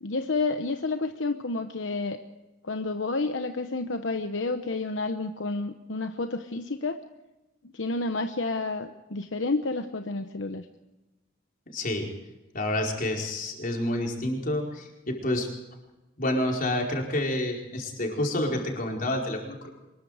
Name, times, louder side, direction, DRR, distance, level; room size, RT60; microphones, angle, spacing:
voice 1, 0.0-2.2 2.6-7.0 7.7-10.7, left 3 dB, 75° left, 7 dB, 1.0 m, -30 dB
voice 2, 11.7-12.1 12.5-15.5 16.2-19.7, left 1 dB, 45° left, 0 dB, 4.8 m, -28 dB
24.5 x 21.5 x 5.0 m, 1.0 s
head